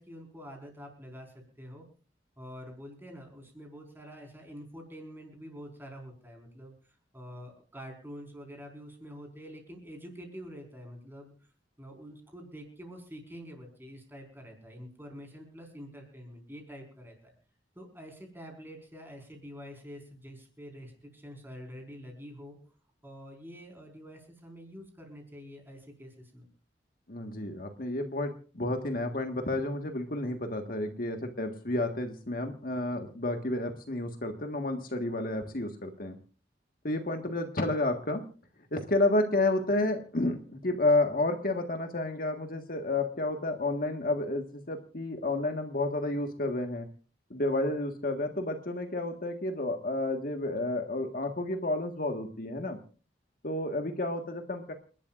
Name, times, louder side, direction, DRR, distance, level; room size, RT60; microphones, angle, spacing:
voice 1, 0.0-1.8 2.4-11.3 11.8-17.3 17.7-22.6 23.0-26.5, equal, 10° right, 2 dB, 4.7 m, -47 dB
voice 2, 27.1-36.2 36.8-38.3 38.7-46.9 47.3-52.8 53.4-54.7, left 2 dB, 50° left, 5 dB, 1.6 m, -30 dB
29.0 x 11.5 x 2.5 m, 0.37 s
head